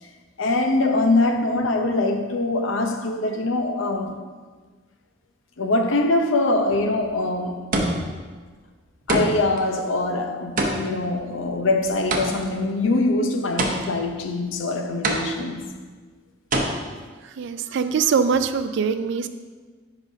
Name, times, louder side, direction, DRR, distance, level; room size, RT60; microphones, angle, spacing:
voice 1, 0.4-4.2 5.6-7.6 9.1-15.6, left 2 dB, 75° left, 0.7 m, -23 dB
sound 1, 6.7-7.1 7.7-8.3 9.1-9.6 10.6-12.6 13.6-14.2 15.0-15.7 16.5-16.6, right 1 dB, 45° right, 0.8 m, -25 dB
voice 2, 17.2-19.3, right 6 dB, 60° right, 0.4 m, -23 dB
9.9 x 5.1 x 2.7 m
head